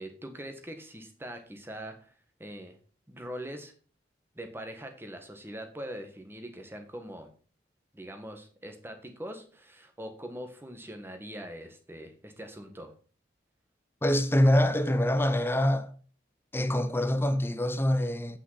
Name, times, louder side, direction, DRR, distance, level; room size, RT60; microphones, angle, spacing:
voice 1, 0.0-2.1 2.4-2.8 3.1-3.7 4.3-7.3 7.9-12.9, equal, 10° right, 1.4 m, -42 dB
voice 2, 14.0-15.9 16.5-18.4, left 1 dB, 10° left, 0.7 m, -25 dB
8.6 x 5.7 x 5.6 m
head